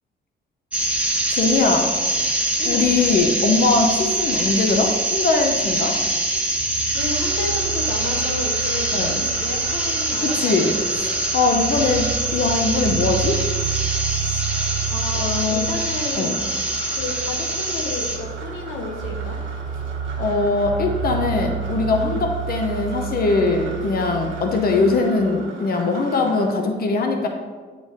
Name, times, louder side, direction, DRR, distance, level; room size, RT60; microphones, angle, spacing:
sound 1, 0.7-18.2, right 1 dB, 5° right, 0.9 m, -24 dB
voice 1, 1.3-1.9 2.6-6.0 8.9-9.1 10.2-10.7 11.3-13.4 15.1-15.7 16.1-16.4 20.2-27.3, left 3 dB, 50° left, 3 dB, 0.8 m, -21 dB
voice 2, 2.6-2.9 6.5-6.6 6.9-11.7 14.1-14.5 14.9-16.4 16.9-19.4 21.9-22.2, left 3 dB, 90° left, 2 dB, 0.9 m, -32 dB
sound 2, 6.6-25.0, right 7 dB, 40° right, 0.4 m, -31 dB
sound 3, 6.9-26.5, right 3 dB, 75° right, 1.3 m, -39 dB
8.2 x 3.9 x 3.5 m, 1.5 s
cardioid pair, 90°, 20 cm